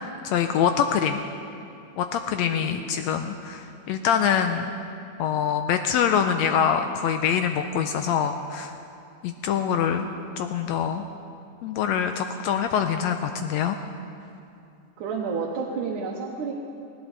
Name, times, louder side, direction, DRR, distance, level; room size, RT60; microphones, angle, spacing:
voice 1, 0.2-1.2 2.0-4.7 5.2-8.7 9.2-10.1 10.4-11.0 11.6-13.8, left 8 dB, 80° left, 7 dB, 1.6 m, -24 dB
voice 2, 2.4-3.0 9.6-10.1 15.0-16.5, right 5 dB, 90° right, -2 dB, 2.6 m, -32 dB
19.0 x 17.0 x 4.0 m, 2.6 s
omnidirectional pair, 3.5 m